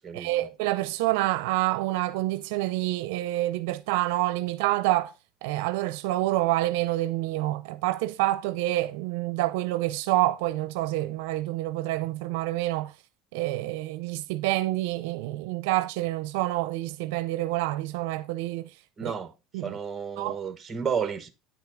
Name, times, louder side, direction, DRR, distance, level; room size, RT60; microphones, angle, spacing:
voice 1, 0.1-5.1 5.4-12.9 13.3-18.7 19.0-19.1 19.5-19.7 20.2-20.4, right 17 dB, 85° right, 0.5 m, -27 dB
voice 2, 19.0-21.3, right 6 dB, 25° right, 1.3 m, -32 dB
9.7 x 5.8 x 3.6 m
supercardioid pair, 110°, 0 cm